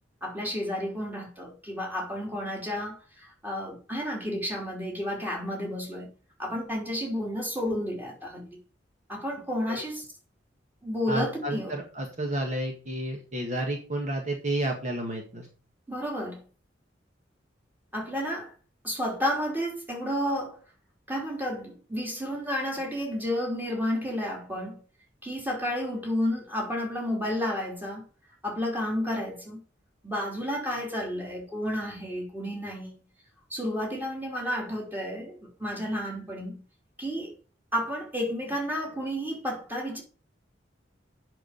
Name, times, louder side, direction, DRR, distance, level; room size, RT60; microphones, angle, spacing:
voice 1, 0.2-6.1 6.4-8.6 9.1-10.0 10.8-11.8 15.9-16.4 17.9-18.5 18.8-20.6 21.1-24.8 25.2-28.1 28.4-29.6 30.0-32.9 33.5-36.6 37.0-37.3 37.7-40.0, equal, 10° right, 3.3 m, -31 dB
voice 2, 11.1-15.5, right 1 dB, 40° right, 1.8 m, -31 dB
8.4 x 6.2 x 6.7 m
head